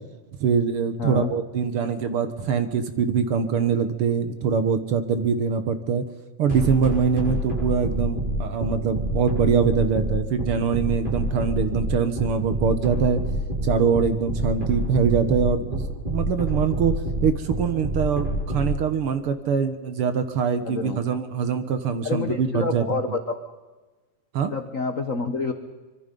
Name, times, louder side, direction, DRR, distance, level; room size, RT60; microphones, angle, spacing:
voice 1, 0.4-6.0 6.4-13.2 13.6-23.0 24.3-24.5, right 6 dB, 60° right, 10 dB, 1.8 m, -23 dB
voice 2, 1.0-1.3 20.6-21.0 22.0-23.4 24.5-25.5, left 4 dB, 70° left, 8 dB, 0.7 m, -28 dB
sound 1, 6.5-18.7, right 1 dB, 15° right, 7.9 m, -26 dB
25.0 x 23.0 x 5.3 m, 1.2 s
omnidirectional pair, 3.3 m